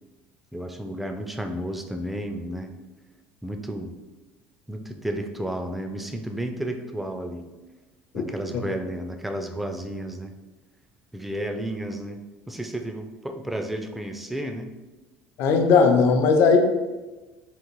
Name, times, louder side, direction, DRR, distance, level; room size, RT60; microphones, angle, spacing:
voice 1, 0.5-2.7 3.4-3.9 4.7-7.4 8.1-10.3 11.1-12.2 12.5-14.7, right 1 dB, 5° right, 5 dB, 0.3 m, -32 dB
voice 2, 15.4-16.6, left 5 dB, 60° left, 5 dB, 0.6 m, -17 dB
3.8 x 2.4 x 4.5 m, 1.2 s
cardioid pair, 135°, 5 cm